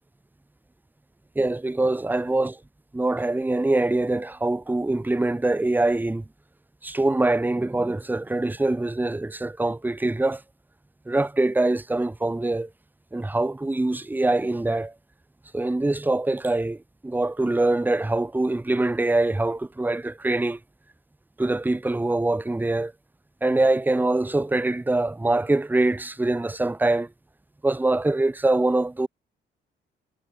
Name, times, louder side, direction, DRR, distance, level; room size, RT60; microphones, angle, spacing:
voice 1, 1.4-2.6 2.9-6.2 6.8-10.4 11.1-12.7 13.1-14.9 15.5-20.6 21.4-22.9 23.4-27.1 27.6-29.1, right 2 dB, 10° right, 1.0 m, -24 dB
cardioid pair, 90°, 20 cm